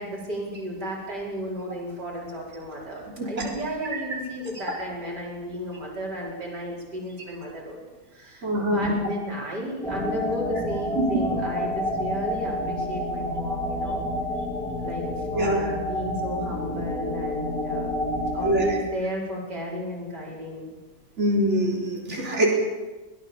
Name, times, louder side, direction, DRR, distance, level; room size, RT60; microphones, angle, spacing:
voice 1, 0.0-7.8 8.1-14.1 14.8-20.8, equal, 85° right, -3 dB, 5.8 m, -34 dB
voice 2, 8.4-9.0 11.0-11.2 15.3-15.7 18.4-18.8 21.2-22.5, equal, 45° right, -3 dB, 4.4 m, -24 dB
sound 1, 9.8-18.8, left 1 dB, ahead, 3.6 m, -29 dB
22.5 x 18.0 x 7.2 m, 1.2 s
omnidirectional pair, 1.8 m